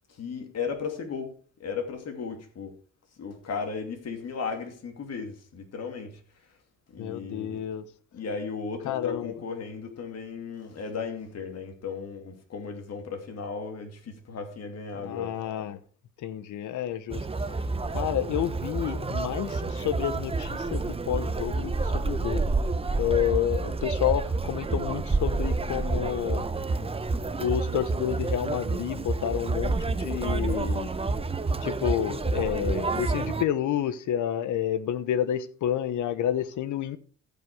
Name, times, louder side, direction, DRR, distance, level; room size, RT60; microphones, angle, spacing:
voice 1, 0.1-2.8 3.2-6.2 6.9-7.6 8.1-15.3, left 5 dB, 55° left, 2.4 m, -36 dB
voice 2, 7.0-7.9 8.8-9.3 14.9-15.8 16.2-17.3 17.9-22.5 23.0-26.5 27.4-30.9 31.6-37.0, left 10 dB, 75° left, 0.9 m, -29 dB
Conversation, 17.1-33.4, right 3 dB, 20° right, 0.8 m, -29 dB
15.0 x 5.4 x 4.8 m
cardioid pair, 90°, 30 cm